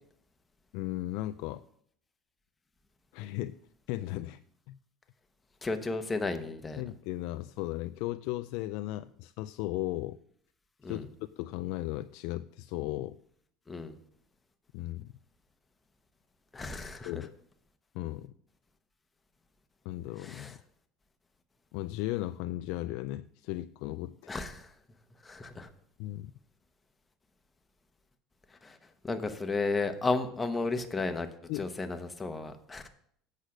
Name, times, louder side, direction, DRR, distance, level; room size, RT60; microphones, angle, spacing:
voice 1, 0.7-1.6 3.1-3.6 3.9-4.4 4.7-4.8 6.8-10.2 10.9-11.1 11.4-13.2 14.7-15.1 17.0-17.3 17.9-18.3 19.9-20.6 21.7-24.3 26.0-26.3 31.5-31.7, left 16 dB, 70° left, 11 dB, 0.3 m, -36 dB
voice 2, 5.6-6.8 10.8-11.1 13.7-14.0 16.5-17.3 20.2-20.6 24.3-24.7 25.2-25.7 28.5-31.3 31.5-32.9, left 3 dB, 15° left, 7 dB, 1.0 m, -34 dB
8.2 x 6.4 x 6.3 m, 0.66 s
supercardioid pair, 105°, 0 cm